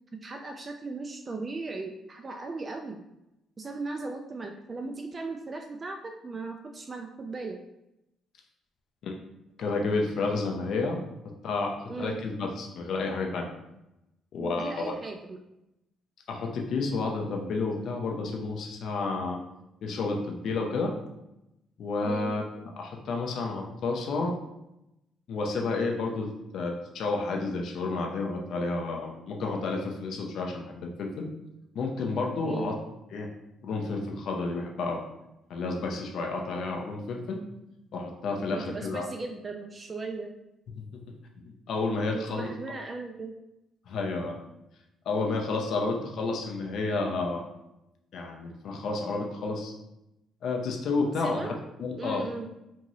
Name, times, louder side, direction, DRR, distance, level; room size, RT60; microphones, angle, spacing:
voice 1, 0.2-3.0 3.6-7.6 11.9-12.2 14.4-15.4 22.0-22.4 32.4-32.7 38.5-40.3 42.1-43.3 51.2-51.5 52.0-52.5, right 3 dB, 35° right, 3 dB, 0.3 m, -37 dB
voice 2, 9.6-11.0 11.4-13.5 14.3-14.9 16.3-19.4 19.8-20.9 21.8-22.4 22.8-24.3 25.3-26.3 26.5-31.3 31.7-32.8 33.1-33.3 33.6-35.0 35.5-37.4 37.9-39.1 40.7-41.0 41.4-42.5 43.9-44.4 45.1-47.4 48.1-49.7 50.4-51.5 51.8-52.3, left 3 dB, 65° left, 1 dB, 0.5 m, -30 dB
2.6 x 2.5 x 3.0 m, 0.89 s
hypercardioid pair, 55°, 0 cm